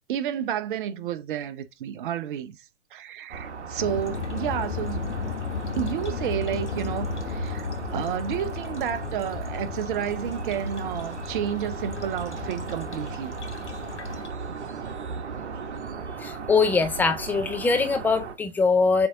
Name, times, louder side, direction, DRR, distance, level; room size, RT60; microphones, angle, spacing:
voice 1, 0.1-2.6 2.9-5.0 5.7-13.3, right 9 dB, 45° right, 0.9 m, -31 dB
sound 1, 3.3-18.3, right 5 dB, 70° right, 1.2 m, -36 dB
sound 2, 3.8-14.3, left 6 dB, 70° left, 1.1 m, -34 dB
voice 2, 16.2-19.1, left 4 dB, 5° left, 0.4 m, -22 dB
7.5 x 3.5 x 3.8 m
figure-of-eight pair, 110°, 36 cm